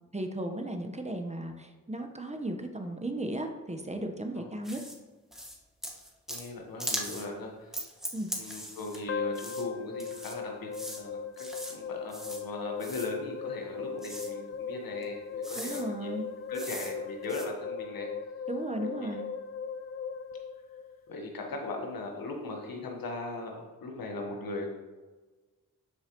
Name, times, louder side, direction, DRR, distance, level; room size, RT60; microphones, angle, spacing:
voice 1, 0.1-4.8 8.1-8.3 15.6-16.3 18.5-19.2, right 1 dB, 20° right, 4 dB, 1.1 m, -35 dB
sound 1, 4.6-4.9 5.3-5.6 5.8-6.5 6.8-7.3 7.7-9.0 9.3-9.6 10.0-10.3 10.7-11.0 11.4-11.8 12.1-12.4 12.8-13.1 14.0-14.3 15.0-15.1 15.4-15.8 16.5-16.9 17.2-17.4, equal, ahead, 1.5 m, -39 dB
voice 2, 6.3-7.8 8.4-16.1 16.5-18.1 19.0-19.1 21.1-24.7, left 2 dB, 90° left, 1 dB, 1.4 m, -39 dB
sound 2, 9.1-21.3, left 6 dB, 40° left, 0.6 m, -38 dB
12.5 x 4.8 x 3.1 m, 1.3 s
cardioid pair, 55°, 34 cm